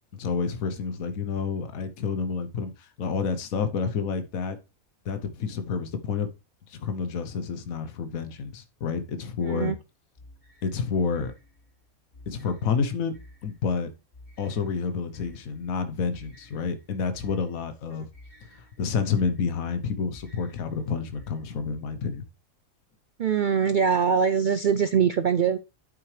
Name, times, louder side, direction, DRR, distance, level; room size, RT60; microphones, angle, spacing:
voice 1, 0.1-4.6 5.0-6.3 6.7-9.7 10.6-11.3 12.3-13.2 13.4-13.9 14.4-18.1 18.5-22.2, left 5 dB, 75° left, 1.4 m, -29 dB
voice 2, 9.4-9.7 23.2-25.6, right 7 dB, 90° right, 0.4 m, -23 dB
sound 1, 10.2-21.8, left 1 dB, 40° left, 4.6 m, -53 dB
9.0 x 7.6 x 3.2 m
omnidirectional pair, 1.5 m